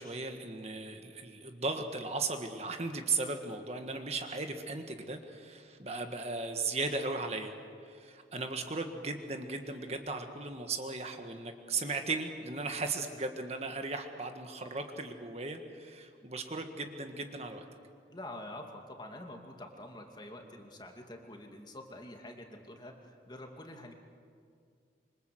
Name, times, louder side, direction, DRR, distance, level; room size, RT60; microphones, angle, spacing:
voice 1, 0.0-7.5 7.8-17.6, right 3 dB, 35° right, 5 dB, 1.6 m, -37 dB
voice 2, 18.1-23.9, left 1 dB, 25° left, 3 dB, 2.5 m, -47 dB
26.5 x 25.0 x 7.9 m, 2.2 s
head